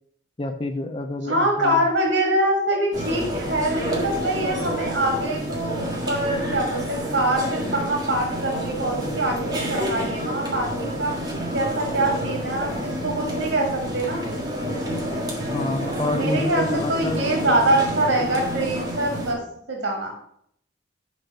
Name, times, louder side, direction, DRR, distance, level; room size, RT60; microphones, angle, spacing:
voice 1, 0.4-1.8 15.5-17.8, left 2 dB, 30° left, 5 dB, 0.5 m, -29 dB
voice 2, 1.3-11.1 11.5-14.2 16.1-19.4 19.7-20.1, right 1 dB, 90° right, 0 dB, 1.8 m, -24 dB
sound 1, 2.9-19.3, equal, 20° right, 1.6 m, -29 dB
6.0 x 5.2 x 6.5 m, 0.71 s
head